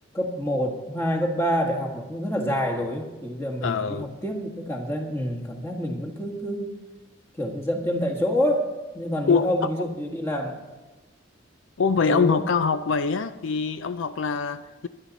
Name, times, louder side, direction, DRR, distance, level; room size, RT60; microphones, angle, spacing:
voice 1, 0.1-6.8 7.4-10.6 12.1-12.4, equal, 10° left, 0 dB, 1.7 m, -27 dB
voice 2, 3.6-4.2 9.3-9.7 11.8-14.9, left 5 dB, 70° left, 12 dB, 0.4 m, -24 dB
21.5 x 9.8 x 4.1 m, 1.1 s
head